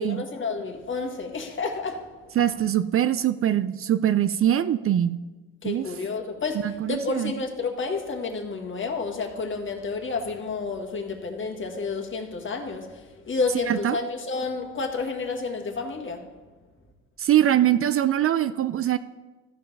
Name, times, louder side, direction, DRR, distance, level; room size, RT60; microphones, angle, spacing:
voice 1, 0.0-2.4 5.6-16.3, left 4 dB, 40° left, 1.6 m, -30 dB
voice 2, 2.4-5.2 5.6-5.9 6.6-7.3 13.7-14.0 17.2-19.0, right 11 dB, 45° right, 0.4 m, -23 dB
14.0 x 5.4 x 5.4 m
cardioid pair, 90°, 30 cm